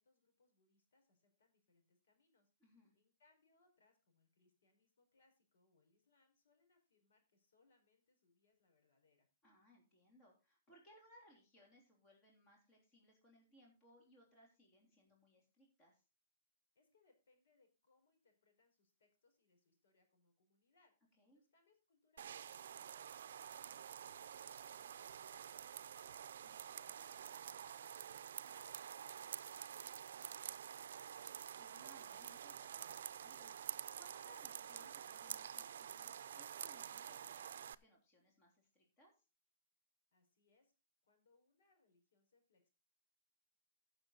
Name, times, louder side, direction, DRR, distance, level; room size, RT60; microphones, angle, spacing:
voice 1, 0.0-9.3 16.7-20.9 21.3-31.5 40.1-40.7 41.0-42.7, left 3 dB, 70° left, 4 dB, 4.9 m, -78 dB
voice 2, 2.6-2.9 9.4-16.0 21.2-21.4 26.4-26.6 31.5-39.1, equal, 20° left, -1 dB, 3.4 m, -67 dB
sound 1, 22.2-37.8, right 9 dB, 70° right, 0.5 m, -49 dB
14.5 x 6.9 x 4.0 m, 0.31 s
hypercardioid pair, 165°, 0 cm